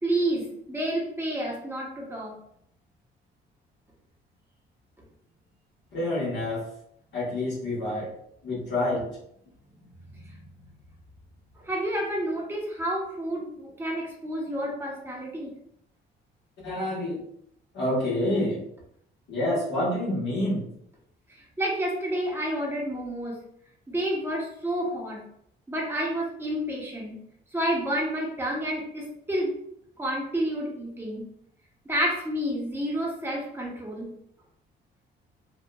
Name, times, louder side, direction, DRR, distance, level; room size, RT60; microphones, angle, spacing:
voice 1, 0.0-2.4 10.1-10.3 11.6-15.5 21.3-23.4 23.9-25.2 25.7-27.2 27.5-29.6 30.0-31.2 31.9-34.1, right 1 dB, 10° right, -2 dB, 0.8 m, -30 dB
voice 2, 5.9-6.7 7.1-8.1 8.4-9.1 16.6-17.2 17.7-18.6 19.3-20.7, left 1 dB, 65° left, -7 dB, 1.2 m, -27 dB
2.8 x 2.3 x 2.2 m, 0.72 s
cardioid pair, 90°, 20 cm